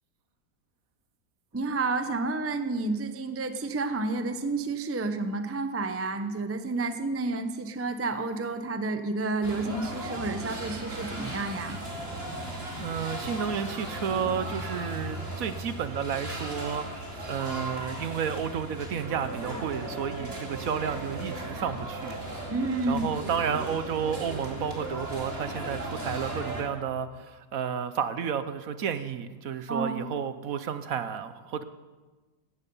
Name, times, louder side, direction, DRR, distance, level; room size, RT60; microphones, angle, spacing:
voice 1, 1.5-11.8 22.5-23.1 29.7-30.1, right 3 dB, 15° right, 9 dB, 0.5 m, -30 dB
sound 1, 9.4-26.6, right 1 dB, 35° right, 2.9 m, -37 dB
voice 2, 12.8-22.2 22.9-31.6, right 7 dB, 60° right, 12 dB, 1.1 m, -31 dB
17.0 x 14.0 x 5.5 m, 1.3 s
omnidirectional pair, 1.8 m